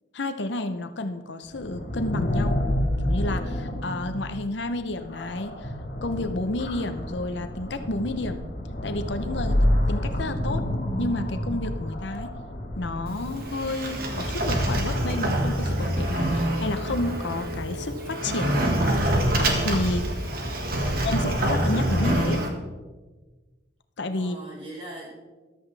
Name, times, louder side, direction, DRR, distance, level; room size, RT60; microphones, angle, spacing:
voice 1, 0.1-2.6 3.0-5.7 6.0-8.4 8.8-10.6 11.0-12.3 12.7-18.5 19.6-20.1 21.0-22.5 24.0-24.4, left 2 dB, 65° left, 9 dB, 0.7 m, -30 dB
sound 1, 1.5-14.1, left 1 dB, 45° left, 1.5 m, -28 dB
Sliding door, 13.1-22.5, right 1 dB, 50° right, 1.7 m, -26 dB
voice 2, 20.5-21.3 24.1-25.2, right 1 dB, 30° right, -5 dB, 4.7 m, -42 dB
14.0 x 12.0 x 3.4 m, 1.3 s
head